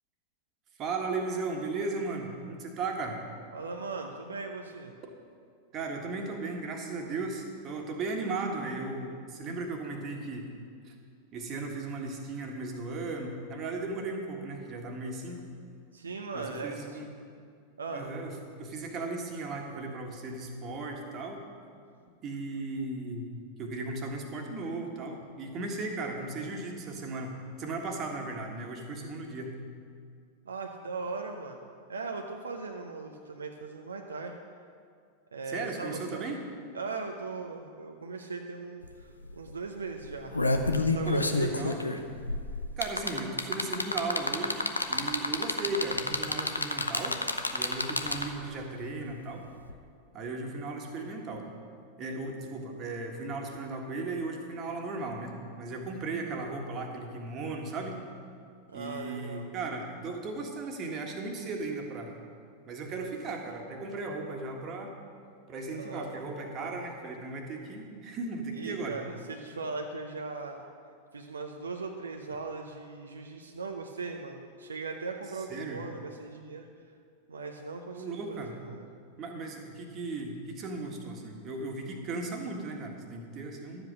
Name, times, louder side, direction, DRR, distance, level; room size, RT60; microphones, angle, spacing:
voice 1, 0.8-3.2 5.7-10.5 10.8-10.9 11.3-15.4 16.3-17.1 17.9-21.4 22.2-23.2 23.6-29.6 35.5-36.4 41.0-41.9 42.8-44.6 44.9-47.2 47.5-49.5 50.1-51.5 52.0-58.0 58.7-62.1 62.6-64.9 65.5-69.0 75.5-75.8 77.9-78.5 79.2-83.9, right 3 dB, 30° right, 2 dB, 1.7 m, -36 dB
voice 2, 3.5-4.9 15.9-17.0 17.8-18.1 30.4-34.3 35.3-36.3 36.7-40.4 40.9-41.9 58.7-59.5 65.7-66.1 68.5-70.7 71.1-76.7 77.3-78.8, right 4 dB, 75° right, 3 dB, 0.7 m, -39 dB
sound 1, 38.8-38.9 39.2-39.5 40.0-48.5 49.7-49.8, left 2 dB, 80° left, 0.7 m, -29 dB
12.0 x 7.9 x 6.5 m, 2.2 s
figure-of-eight pair, 90°, 0 cm